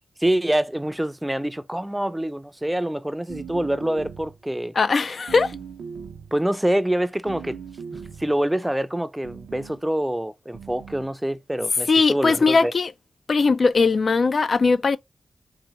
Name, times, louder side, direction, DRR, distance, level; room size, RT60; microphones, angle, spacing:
voice 1, 0.2-4.7 6.3-7.6 7.9-12.7, right 1 dB, 10° right, 0.4 m, -25 dB
sound 1, 3.3-4.4 5.3-6.4 7.3-8.4 9.2-9.8 10.5-11.1, right 6 dB, 90° right, 0.5 m, -39 dB
voice 2, 4.8-5.5 11.9-12.9 13.3-15.0, left 4 dB, 60° left, 0.3 m, -19 dB
4.0 x 2.2 x 3.0 m
cardioid pair, 45°, 0 cm